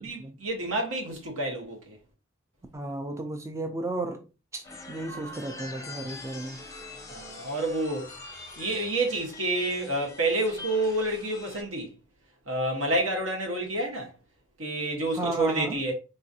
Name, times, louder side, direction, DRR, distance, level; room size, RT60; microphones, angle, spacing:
voice 1, 0.0-2.0 7.1-8.1 8.6-11.9 12.5-14.1 14.6-15.9, right 1 dB, 70° right, 1.2 m, -29 dB
voice 2, 2.7-4.2 4.5-6.6 15.1-15.8, right 2 dB, 15° right, 0.4 m, -34 dB
sound 1, 4.6-11.6, left 2 dB, 15° left, 0.7 m, -44 dB
3.8 x 2.5 x 2.7 m
head